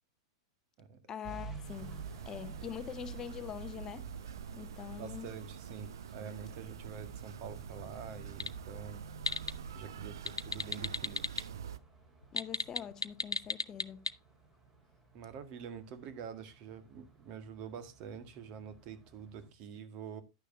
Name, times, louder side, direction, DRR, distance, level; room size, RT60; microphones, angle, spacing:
voice 1, 1.1-4.1 4.5-5.3 12.3-14.1, left 8 dB, 25° left, 0.7 m, -44 dB
sound 1, 1.2-19.5, right 3 dB, 20° right, 4.1 m, -54 dB
sound 2, 1.6-11.8, right 7 dB, 65° right, 0.6 m, -46 dB
voice 2, 4.9-9.0 9.7-11.3 15.1-20.2, right 7 dB, 40° right, 1.7 m, -46 dB
sound 3, 8.2-8.6 9.0-9.5 10.1-11.4 12.2-14.1, left 3 dB, 85° left, 0.5 m, -33 dB
10.5 x 10.0 x 2.7 m
figure-of-eight pair, 95°, 2 cm